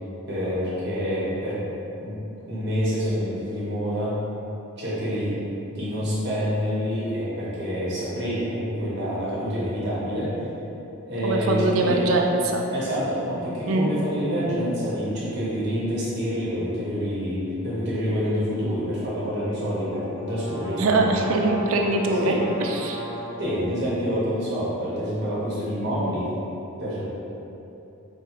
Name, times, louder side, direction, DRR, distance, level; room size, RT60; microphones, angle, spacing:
voice 1, 0.3-1.6 2.0-2.1 2.5-4.2 4.8-5.4 5.7-10.4 11.1-12.1 12.7-21.2 22.2-22.5 23.3-26.3 26.8-27.0, equal, 50° right, -8 dB, 0.8 m, -27 dB
voice 2, 11.2-12.6 13.7-13.9 20.8-22.3 22.6-23.0, right 2 dB, 70° right, 2 dB, 0.4 m, -22 dB
sound 1, 19.7-23.6, equal, 15° right, 0.5 m, -36 dB
4.6 x 2.4 x 2.9 m, 2.9 s
head